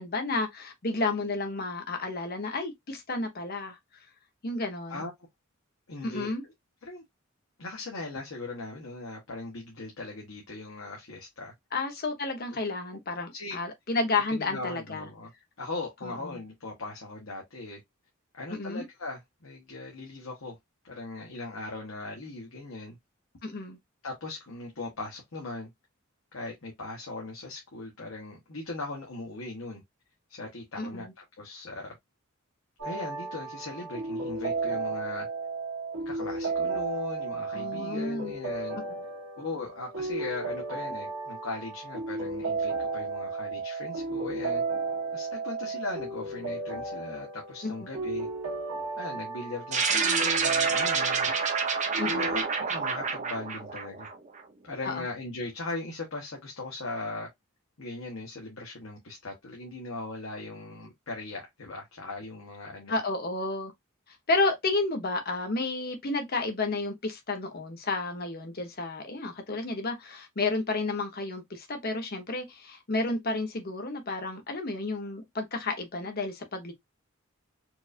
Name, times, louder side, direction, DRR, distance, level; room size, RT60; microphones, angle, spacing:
voice 1, 0.0-3.8 4.4-5.0 6.0-6.4 11.7-15.1 16.0-16.4 18.5-18.8 23.4-23.8 30.8-31.1 37.5-38.3 38.8-38.9 47.6-47.9 52.0-52.2 54.8-55.0 62.9-63.7 64.3-76.7, left 3 dB, 45° left, 1.1 m, -31 dB
voice 2, 5.9-6.5 6.8-7.0 7.6-11.5 12.5-12.6 13.3-13.6 14.3-15.3 15.6-17.8 18.3-20.6 20.8-23.0 24.0-25.7 26.3-29.8 30.3-31.9 32.8-35.3 36.0-38.8 39.4-44.6 45.1-48.3 49.0-51.3 52.0-54.1 54.6-57.3 57.8-63.0, left 2 dB, 75° left, 1.1 m, -39 dB
sound 1, 32.8-52.4, right 3 dB, 70° right, 1.5 m, -33 dB
sound 2, 49.7-54.4, right 5 dB, 35° right, 0.8 m, -28 dB
4.5 x 2.5 x 2.5 m
head